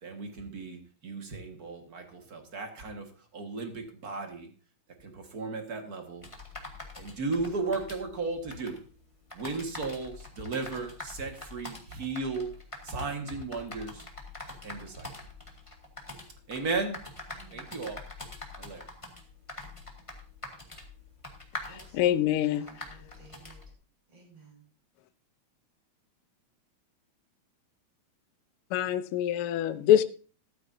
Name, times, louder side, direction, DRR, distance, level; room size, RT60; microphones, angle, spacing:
voice 1, 0.0-4.5 5.0-6.3 6.9-8.8 9.3-12.5 12.8-14.1 14.6-15.1 16.5-17.0 17.5-18.0 18.6-18.9, right 3 dB, 40° right, 1.8 m, -35 dB
sound 1, 6.2-23.7, left 2 dB, 15° left, 1.5 m, -45 dB
voice 2, 17.3-17.8 21.7-23.6 24.1-24.6, right 4 dB, 55° right, 7.0 m, -55 dB
voice 3, 21.9-22.7 28.7-30.0, left 11 dB, 80° left, 1.2 m, -24 dB
13.5 x 13.0 x 2.7 m
omnidirectional pair, 3.3 m